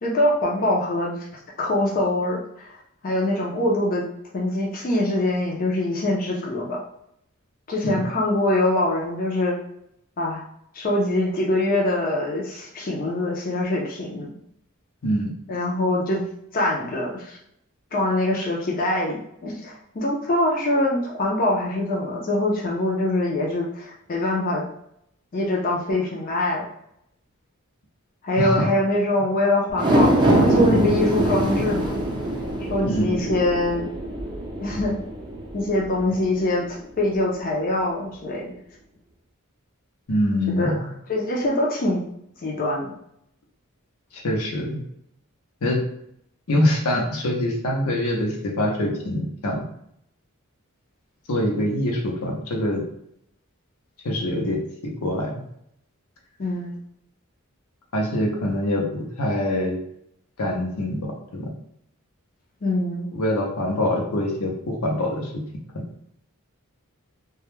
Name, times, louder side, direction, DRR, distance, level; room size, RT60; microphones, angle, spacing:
voice 1, 0.0-1.2 1.6-2.8 3.0-4.1 4.3-6.8 7.7-9.6 10.2-10.4 10.7-14.3 15.5-16.2 16.5-17.4 17.9-24.6 25.3-26.6 28.2-32.0 32.7-33.9 34.6-34.9 35.5-38.5 40.6-40.8 41.1-42.0 42.4-42.9 56.4-56.8 62.6-63.1, left 1 dB, 40° left, -3 dB, 0.5 m, -24 dB
voice 2, 28.4-28.7 32.8-33.2 40.1-40.8 44.2-44.8 45.6-45.8 46.5-49.6 51.3-52.8 54.0-54.6 55.0-55.3 57.9-59.8 60.4-61.5 63.1-65.3, left 1 dB, 75° left, -1 dB, 0.7 m, -24 dB
sound 1, 29.7-36.2 36.6-36.7, right 1 dB, 20° right, 0.5 m, -23 dB
2.2 x 2.1 x 3.0 m, 0.74 s
head